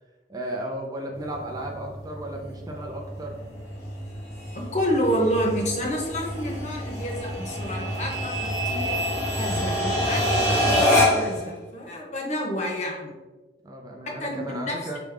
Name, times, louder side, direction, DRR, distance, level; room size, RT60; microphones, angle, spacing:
voice 1, 0.3-3.4 13.6-15.0, right 1 dB, 20° right, 1 dB, 0.5 m, -34 dB
sound 1, 1.2-11.4, equal, 15° left, 1.3 m, -26 dB
voice 2, 4.5-9.0 9.4-13.1 14.0-15.0, equal, 40° left, -1 dB, 1.0 m, -29 dB
5.0 x 3.1 x 3.5 m, 1.2 s
head